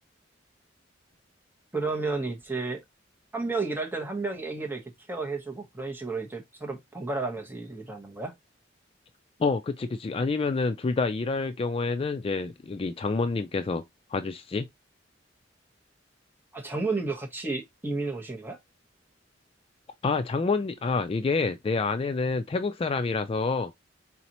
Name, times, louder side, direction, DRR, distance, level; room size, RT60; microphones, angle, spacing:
voice 1, 1.7-2.8 3.3-8.3 16.5-18.6, right 3 dB, 10° right, 1.1 m, -32 dB
voice 2, 9.4-13.8 14.1-14.7 20.0-23.7, left 4 dB, 30° left, 0.3 m, -28 dB
4.2 x 4.0 x 2.9 m
head